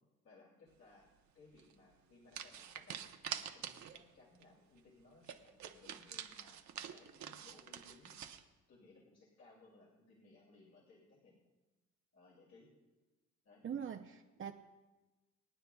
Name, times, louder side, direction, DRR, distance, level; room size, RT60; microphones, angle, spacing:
voice 1, 0.2-3.0 3.3-6.6 6.9-8.1 8.7-11.3 12.1-12.7 13.4-13.6, left 3 dB, 55° left, -4 dB, 2.6 m, -63 dB
sound 1, 1.5-1.7 2.3-4.1 4.4-4.5 4.8-4.9 5.2-8.4, right 9 dB, 65° right, 0.9 m, -46 dB
voice 2, 13.6-14.5, right 8 dB, 40° right, 3 dB, 0.6 m, -42 dB
26.0 x 9.4 x 2.3 m, 1.1 s
cardioid pair, 90°, 30 cm